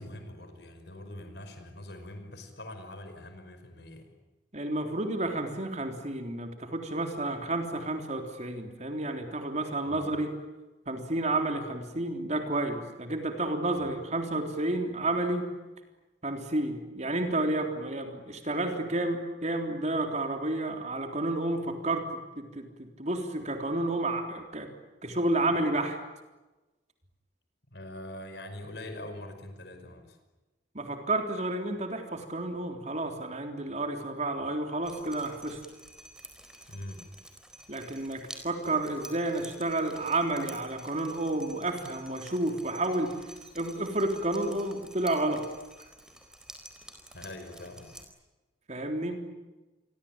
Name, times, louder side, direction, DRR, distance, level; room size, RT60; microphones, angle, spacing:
voice 1, 0.0-4.1 9.9-10.0 13.8-13.9 27.7-30.2 36.7-37.1 37.8-37.9 47.1-47.9, left 1 dB, 60° left, 7 dB, 5.3 m, -43 dB
voice 2, 4.5-10.3 10.9-15.5 16.2-22.1 22.4-24.7 25.0-26.0 30.7-35.6 37.7-43.2 43.6-45.4 48.7-49.3, right 2 dB, 40° right, 5 dB, 3.6 m, -31 dB
Drip, 34.8-48.0, right 1 dB, 5° right, 4.3 m, -50 dB
28.0 x 23.5 x 8.9 m, 1.1 s
head